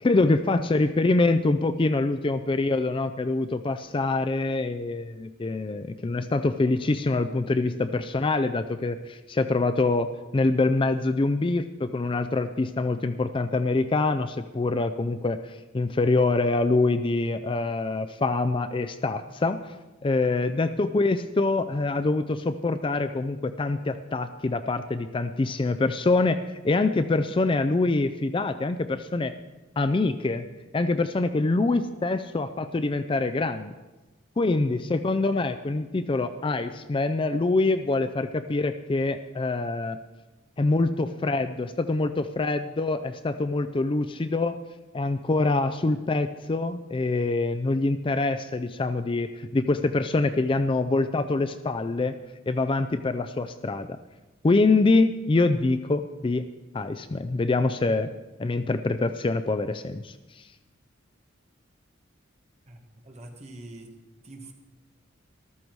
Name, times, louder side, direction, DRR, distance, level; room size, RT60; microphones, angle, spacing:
voice 1, 0.0-10.1 10.3-19.6 20.0-26.4 26.6-29.3 29.8-30.5 30.7-33.7 34.4-40.0 40.6-44.6 44.9-52.2 52.5-54.0 54.4-56.5 56.7-58.1 58.4-60.4, left 3 dB, 25° left, 10 dB, 0.4 m, -25 dB
voice 2, 62.7-63.9 64.2-64.5, right 1 dB, 35° right, 3 dB, 1.7 m, -44 dB
14.0 x 13.0 x 4.7 m, 1.1 s
head